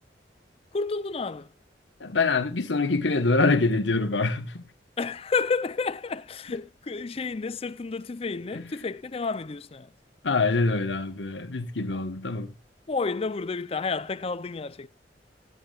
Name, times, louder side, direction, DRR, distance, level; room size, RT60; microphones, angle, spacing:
voice 1, 0.7-1.5 5.0-9.9 11.9-12.0 12.9-14.9, left 4 dB, 35° left, 0.5 m, -30 dB
voice 2, 2.0-4.7 8.5-8.7 10.2-12.5, left 3 dB, 90° left, 1.3 m, -25 dB
15.0 x 10.5 x 2.4 m
head